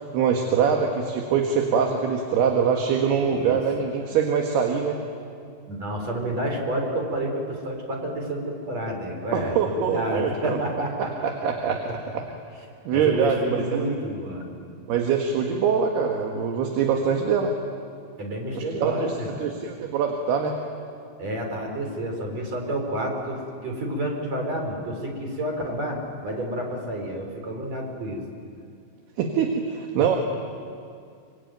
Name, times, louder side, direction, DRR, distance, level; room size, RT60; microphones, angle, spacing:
voice 1, 0.1-5.0 9.3-10.6 11.2-12.3 12.9-14.0 14.9-17.5 18.5-19.1 19.4-20.5 29.2-30.2, right 6 dB, 65° right, 2 dB, 3.3 m, -24 dB
voice 2, 3.2-3.6 5.7-11.1 12.9-14.5 18.2-19.5 21.2-28.2, right 1 dB, 35° right, 1 dB, 4.9 m, -30 dB
25.0 x 25.0 x 9.3 m, 2.3 s
omnidirectional pair, 5.5 m